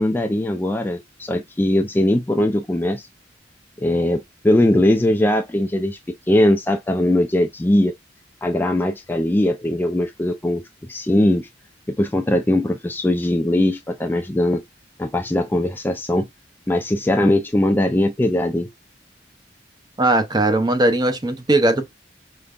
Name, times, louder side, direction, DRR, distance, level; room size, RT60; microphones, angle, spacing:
voice 1, 0.0-3.1 3.8-6.0 6.3-7.9 8.4-10.6 10.9-11.5 11.9-14.6 15.0-16.3 16.7-18.7, left 1 dB, 10° left, 0.3 m, -20 dB
voice 2, 20.0-21.9, right 2 dB, 20° right, 0.6 m, -18 dB
5.0 x 2.2 x 2.3 m
head